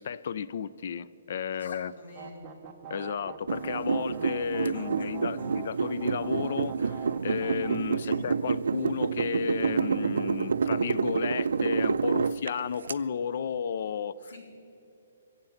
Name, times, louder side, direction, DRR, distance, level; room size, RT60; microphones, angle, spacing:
voice 1, 0.0-1.9 2.9-14.3, left 7 dB, 40° left, 17 dB, 0.3 m, -33 dB
voice 2, 1.5-2.6 4.7-5.5 8.0-8.3 14.3-14.4, left 2 dB, 75° left, -1 dB, 3.9 m, -47 dB
sound 1, 2.1-7.7, right 7 dB, 15° right, 0.6 m, -43 dB
sound 2, 3.5-12.9, right 5 dB, 75° right, 0.4 m, -28 dB
22.5 x 7.9 x 5.7 m, 3.0 s
hypercardioid pair, 180°, 0 cm